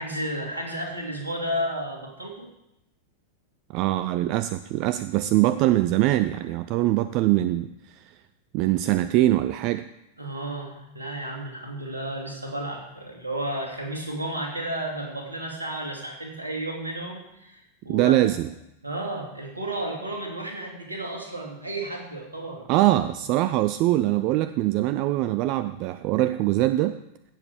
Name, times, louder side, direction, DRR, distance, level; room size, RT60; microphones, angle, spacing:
voice 1, 0.0-2.5 10.2-18.3 18.8-22.6, right 1 dB, 80° right, 0 dB, 2.7 m, -32 dB
voice 2, 3.7-8.0 8.5-9.9 17.9-18.5 22.7-27.0, right 15 dB, 40° right, 12 dB, 0.4 m, -23 dB
16.5 x 7.4 x 4.9 m, 0.88 s
figure-of-eight pair, 90°, 0 cm